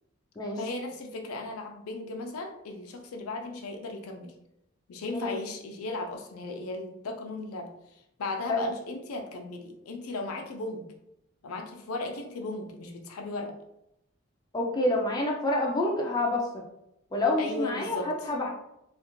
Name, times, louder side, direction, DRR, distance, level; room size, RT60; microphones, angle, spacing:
voice 1, 0.6-4.3 4.9-10.9 11.4-13.6 17.4-18.1, left 2 dB, 85° left, 3 dB, 0.5 m, -36 dB
voice 2, 14.5-16.7 17.1-18.5, left 2 dB, 20° left, -1 dB, 0.4 m, -28 dB
2.5 x 2.4 x 3.0 m, 0.82 s
head